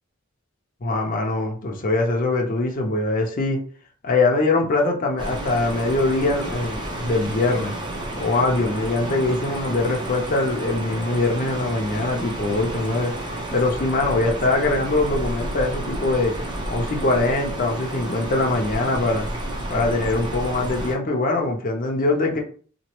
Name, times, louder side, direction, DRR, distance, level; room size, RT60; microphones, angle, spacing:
voice 1, 0.8-3.6 4.0-7.7 8.2-13.1 13.5-16.3 16.7-19.3 19.7-22.4, left 2 dB, 45° left, 0.6 m, -22 dB
sound 1, 5.2-21.0, right 1 dB, 20° right, 0.6 m, -31 dB
2.9 x 2.0 x 3.0 m
head